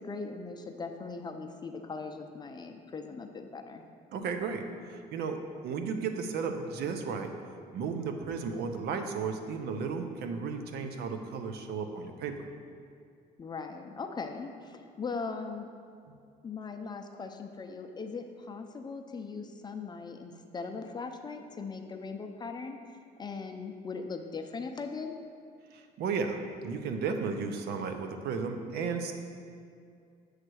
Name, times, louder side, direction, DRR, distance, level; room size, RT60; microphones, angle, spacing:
voice 1, 0.0-3.8 13.4-15.7 16.4-25.2, left 4 dB, 25° left, 5 dB, 0.5 m, -39 dB
voice 2, 4.1-7.3 7.7-12.5 25.7-29.1, right 5 dB, 70° right, 6 dB, 0.7 m, -34 dB
7.8 x 3.2 x 6.2 m, 2.3 s
cardioid pair, 110°, 17 cm